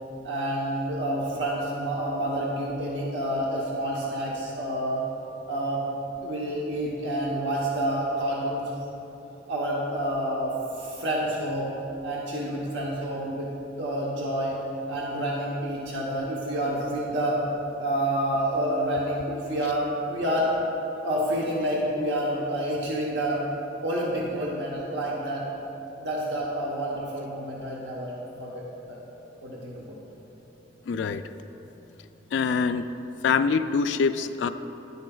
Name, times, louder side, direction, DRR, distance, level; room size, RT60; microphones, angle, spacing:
voice 1, 0.2-5.0 5.5-5.8 6.2-8.7 9.5-11.7 12.0-13.5 13.8-14.6 14.9-17.4 17.8-20.5 21.0-23.4 23.8-25.4 26.0-28.6 28.9-29.0 29.4-29.9, right 1 dB, 85° right, -4 dB, 1.0 m, -28 dB
voice 2, 30.9-31.2 32.3-32.9 33.2-34.5, left 5 dB, 85° left, 10 dB, 0.3 m, -24 dB
10.5 x 9.3 x 2.3 m, 3.0 s
head